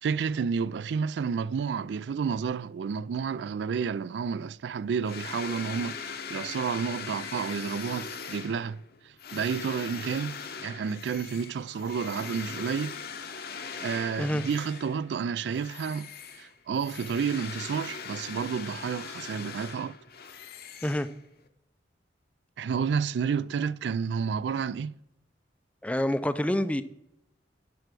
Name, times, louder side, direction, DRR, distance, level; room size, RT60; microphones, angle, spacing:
voice 1, 0.0-8.8 9.0-13.0 13.8-16.1 16.4-20.0 22.6-24.9, right 6 dB, 65° right, 0.3 m, -30 dB
sound 1, 5.0-15.1 15.5-21.5, left 6 dB, 55° left, 0.8 m, -40 dB
voice 2, 25.8-26.8, left 1 dB, 5° left, 0.4 m, -27 dB
11.5 x 4.7 x 6.0 m
head